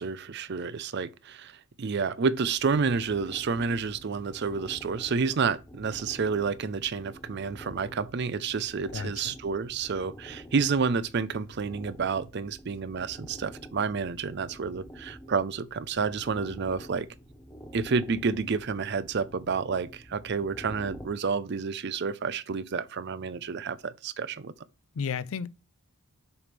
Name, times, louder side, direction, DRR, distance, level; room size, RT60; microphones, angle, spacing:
voice 1, 0.0-17.1 17.7-24.5, right 5 dB, 50° right, 0.5 m, -30 dB
sound 1, 2.4-21.1, equal, 15° left, 0.7 m, -48 dB
voice 2, 8.9-9.3 25.0-25.5, left 6 dB, 65° left, 0.4 m, -33 dB
7.0 x 3.2 x 5.1 m
head